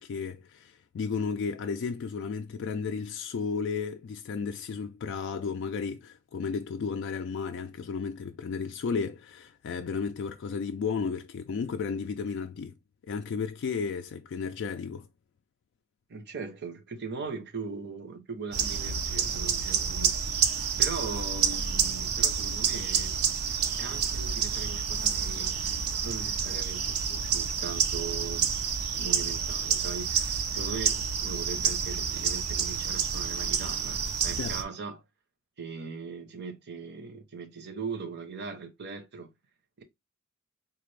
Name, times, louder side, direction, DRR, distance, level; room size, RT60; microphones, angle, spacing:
voice 1, 0.0-12.7 13.1-15.1 34.4-34.6, left 5 dB, 55° left, 0.3 m, -33 dB
voice 2, 16.1-20.2 20.4-23.1 23.8-25.6 26.0-28.5 28.9-35.0 35.6-39.3 39.8-39.9, right 4 dB, 50° right, 0.7 m, -39 dB
sound 1, 18.5-34.6, right 7 dB, 85° right, 0.5 m, -29 dB
3.9 x 2.5 x 3.2 m
head